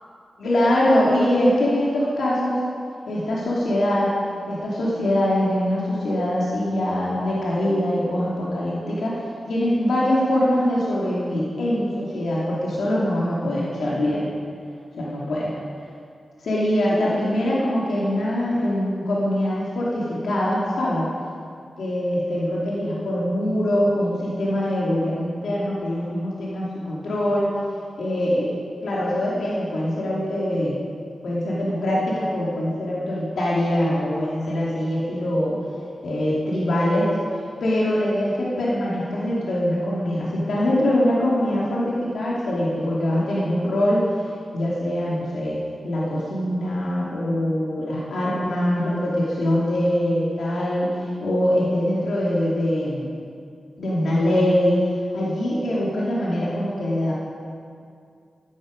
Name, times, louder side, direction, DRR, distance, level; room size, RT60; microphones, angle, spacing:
voice 1, 0.4-2.6 3.1-4.1 4.5-9.2 9.5-14.3 15.0-15.5 16.4-21.1 21.8-27.5 28.0-28.5 28.8-30.9 31.2-35.6 36.0-37.1 37.6-44.0 44.5-50.9 51.2-53.1 53.8-54.8 55.1-57.1, left 1 dB, 90° left, -6 dB, 2.7 m, -23 dB
14.0 x 11.5 x 5.2 m, 2.3 s
wide cardioid pair, 175°, 0 cm